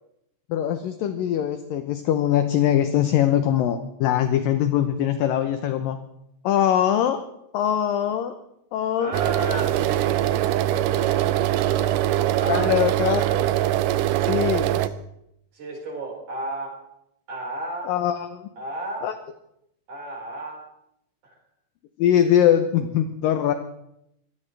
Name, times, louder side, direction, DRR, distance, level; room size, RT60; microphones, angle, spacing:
voice 1, 0.5-6.0 6.4-7.2 7.5-8.4 8.7-9.1 9.5-9.6 12.5-13.3 14.2-14.8 17.8-18.5 19.0-19.1 22.0-23.5, left 10 dB, 75° left, 8 dB, 2.2 m, -22 dB
voice 2, 9.0-13.5 15.5-16.8 17.3-17.9 18.6-19.1 19.9-20.6 21.2-21.3, right 1 dB, 50° right, -2 dB, 6.3 m, -34 dB
sound 1, 9.1-14.9, right 13 dB, 90° right, 1.8 m, -22 dB
24.5 x 17.0 x 3.4 m, 0.79 s
omnidirectional pair, 4.7 m